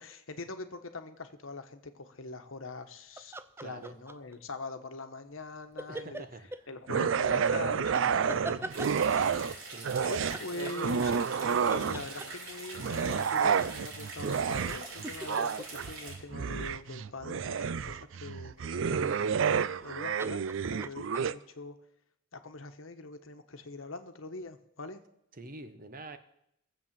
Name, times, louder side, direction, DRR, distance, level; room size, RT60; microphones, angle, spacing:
voice 1, 0.0-3.3 3.6-6.2 6.7-9.6 10.1-19.4 19.8-20.4 20.7-21.7 22.3-25.0, left 3 dB, 80° left, 8 dB, 1.2 m, -43 dB
sound 1, 3.2-4.3 5.8-6.6 8.0-9.4 10.0-11.4 11.7-12.6 14.4-17.1 19.5-19.9 20.2-21.2, right 2 dB, 10° right, 0.5 m, -42 dB
voice 2, 3.6-4.0 5.9-6.5 9.6-10.1 25.3-26.2, right 2 dB, 45° right, 9 dB, 1.1 m, -46 dB
sound 2, 6.9-9.5 9.8-12.2 12.7-21.3, right 6 dB, 70° right, 0.4 m, -30 dB
sound 3, 8.7-16.1, right 3 dB, 85° right, 3.4 m, -44 dB
18.0 x 7.6 x 7.5 m, 0.77 s
head